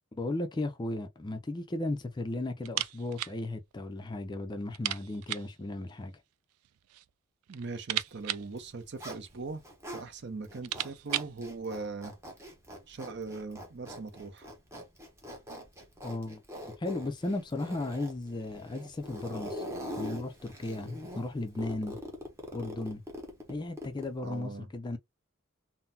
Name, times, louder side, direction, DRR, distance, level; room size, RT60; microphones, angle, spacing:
voice 1, 0.1-6.1 16.0-19.7 20.0-22.0 22.5-23.0 23.5-25.0, left 2 dB, 20° left, 0.3 m, -35 dB
sound 1, 2.6-3.4 3.7-3.8 4.1-4.2 4.7-5.6 6.5-7.1 7.4-9.4 10.1-10.2 10.5-11.4, right 14 dB, 90° right, 0.3 m, -36 dB
voice 2, 7.5-9.6 9.9-12.1 12.9-14.5 24.2-24.7, right 3 dB, 50° right, 0.6 m, -40 dB
Zipper (clothing), 8.4-10.1 10.4-24.2, equal, 15° right, 0.8 m, -43 dB
3.8 x 2.0 x 2.6 m
head